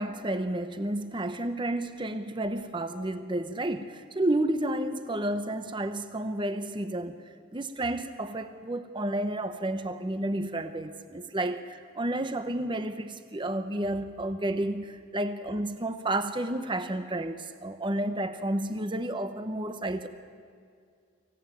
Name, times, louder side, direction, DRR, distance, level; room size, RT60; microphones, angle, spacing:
voice 1, 0.0-7.2 7.5-20.1, right 1 dB, 20° right, 9 dB, 0.9 m, -31 dB
24.5 x 17.0 x 9.2 m, 2.2 s
head